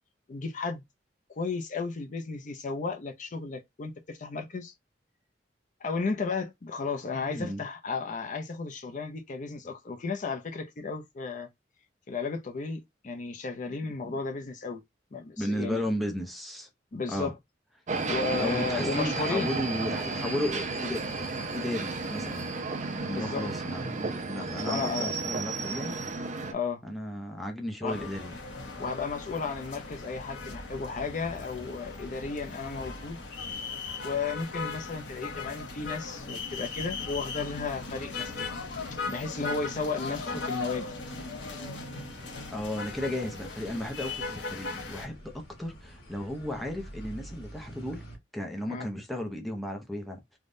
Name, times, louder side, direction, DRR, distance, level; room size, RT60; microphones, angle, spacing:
voice 1, 0.3-0.8 1.3-4.7 5.8-11.5 12.1-14.8 15.1-15.8 16.9-17.3 18.1-19.5 23.1-23.4 24.4-25.1 26.5-26.8 27.8-28.0 28.8-33.2 34.0-38.5 38.9-40.9 48.7-48.9, left 4 dB, 45° left, 0.5 m, -34 dB
voice 2, 7.1-7.6 14.0-14.2 15.4-16.7 17.1-17.3 18.4-22.5 22.9-26.0 26.8-28.4 28.8-28.9 42.5-45.3 45.6-48.0 48.3-50.4, left 1 dB, ahead, 0.6 m, -34 dB
sound 1, 17.9-26.5, right 3 dB, 45° right, 0.5 m, -33 dB
sound 2, 27.9-45.1, left 4 dB, 85° left, 0.9 m, -38 dB
sound 3, 28.7-48.2, equal, 60° left, 1.2 m, -50 dB
3.4 x 2.2 x 2.6 m
head